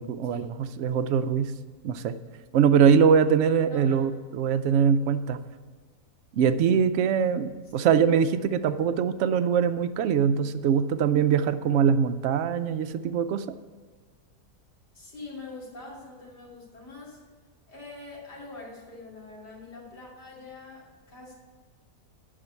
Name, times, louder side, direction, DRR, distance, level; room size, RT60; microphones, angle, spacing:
voice 1, 0.0-1.5 1.8-2.2 2.5-5.4 6.3-13.5, right 7 dB, 70° right, 9 dB, 0.7 m, -23 dB
voice 2, 3.7-4.0 14.9-17.2 17.7-21.3, left 3 dB, 80° left, -4 dB, 3.2 m, -44 dB
8.8 x 5.8 x 8.1 m, 1.4 s
omnidirectional pair, 1.8 m